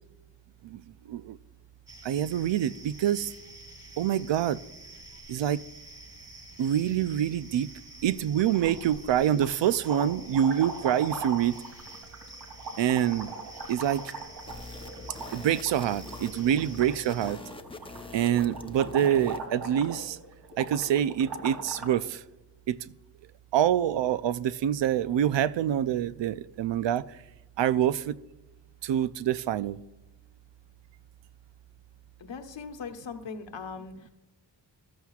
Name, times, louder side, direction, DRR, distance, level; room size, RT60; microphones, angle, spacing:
sound 1, 1.9-17.3, right 1 dB, 35° right, 2.2 m, -48 dB
voice 1, 2.0-3.3 4.0-4.6 5.3-5.6 6.6-7.7 8.0-11.6 12.8-13.3 13.7-14.1 15.3-17.4 18.1-20.2 20.6-22.2 22.7-22.8 23.5-27.1 27.6-28.2 28.8-29.8, right 10 dB, 85° right, 0.5 m, -26 dB
sound 2, 8.4-9.0 9.3-22.0, right 3 dB, 70° right, 2.7 m, -40 dB
sound 3, 14.4-19.5, left 2 dB, 10° left, 0.6 m, -45 dB
voice 2, 32.2-34.1, left 5 dB, 80° left, 1.3 m, -40 dB
14.0 x 13.0 x 2.4 m
wide cardioid pair, 150°, 42 cm